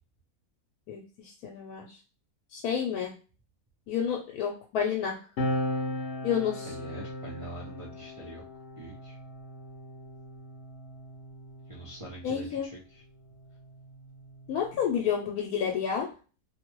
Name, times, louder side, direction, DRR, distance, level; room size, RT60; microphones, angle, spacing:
voice 1, 0.9-2.0 2.5-3.1 3.9-5.2 6.2-6.7 12.2-12.7 14.5-16.1, left 8 dB, 80° left, 0 dB, 1.1 m, -30 dB
sound 1, 5.4-12.3 13.3-15.1, left 1 dB, 60° left, 0.8 m, -37 dB
voice 2, 6.6-8.4 8.8-9.2 11.7-13.0, right 2 dB, 50° right, -6 dB, 0.3 m, -44 dB
2.6 x 2.2 x 3.0 m, 0.36 s
omnidirectional pair, 1.6 m